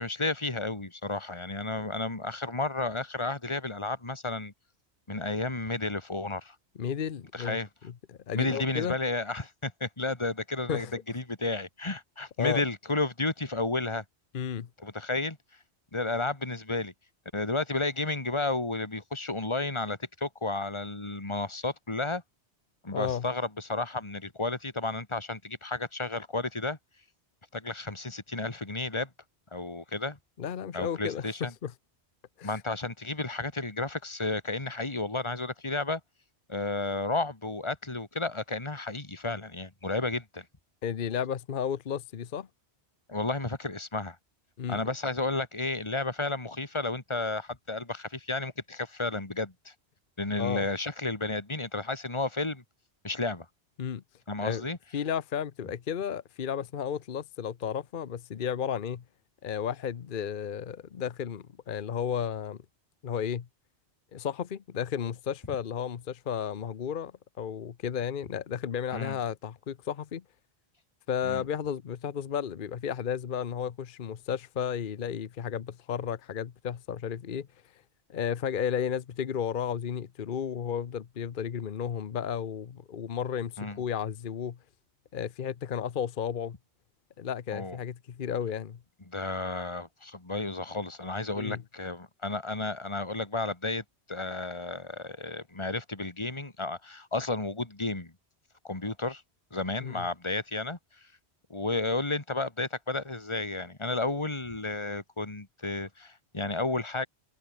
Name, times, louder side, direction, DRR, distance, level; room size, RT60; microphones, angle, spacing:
voice 1, 0.0-4.5 5.1-6.5 7.3-7.7 8.3-10.9 11.1-14.0 14.8-15.4 15.9-16.9 17.3-22.2 22.8-26.8 27.5-29.1 29.5-30.2 30.7-31.5 32.4-36.0 36.5-40.4 43.1-44.2 44.7-49.7 50.2-52.6 53.0-53.5 54.3-54.8 68.9-69.2 71.2-71.4 83.6-83.8 87.5-87.8 89.1-93.8 94.1-98.1 98.6-99.2 99.5-100.8 101.5-107.1, left 2 dB, 25° left, 2.4 m, -32 dB
voice 2, 6.8-7.6 7.8-8.9 10.7-10.9 12.4-12.6 14.3-14.7 22.9-23.3 30.4-31.7 32.4-32.5 40.8-42.5 44.6-44.8 50.4-50.7 53.8-54.0 54.4-54.6 54.9-59.0 59.4-62.6 63.0-63.5 64.1-67.1 67.4-70.2 71.1-77.5 78.1-84.6 85.1-86.6 87.2-88.8 91.4-91.6 99.8-100.1, left 8 dB, 55° left, 0.9 m, -33 dB
omnidirectional pair, 1.1 m